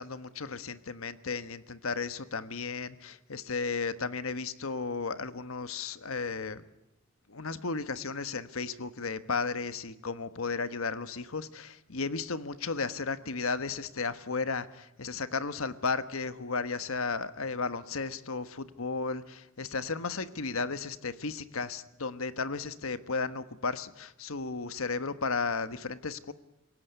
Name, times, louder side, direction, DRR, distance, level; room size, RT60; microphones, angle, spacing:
voice 1, 0.0-6.6 7.3-26.3, left 4 dB, 90° left, 12 dB, 1.3 m, -34 dB
26.5 x 17.5 x 9.5 m, 0.90 s
head